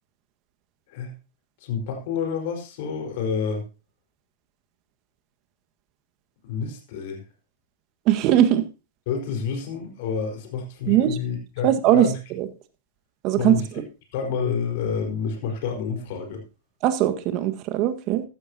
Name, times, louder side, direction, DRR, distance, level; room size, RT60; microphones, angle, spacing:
voice 1, 1.6-3.6 6.4-7.2 9.1-12.2 13.4-13.6 14.1-16.4, left 6 dB, 55° left, 4 dB, 4.8 m, -29 dB
voice 2, 8.1-8.6 10.9-11.2 11.6-12.1 12.4-12.5 13.2-13.6 16.8-18.2, right 12 dB, 40° right, 9 dB, 1.6 m, -20 dB
14.5 x 13.0 x 2.9 m, 0.31 s
hypercardioid pair, 105°, 0 cm